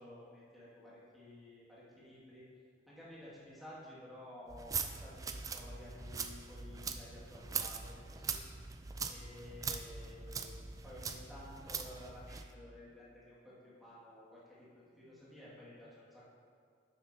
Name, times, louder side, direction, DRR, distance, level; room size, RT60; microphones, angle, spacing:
voice 1, 0.0-2.4 2.9-8.4 9.1-16.3, left 1 dB, ahead, -9 dB, 2.1 m, -53 dB
sound 1, 4.5-12.5, right 5 dB, 20° right, 0.3 m, -42 dB
10.0 x 7.8 x 2.8 m, 2.1 s
head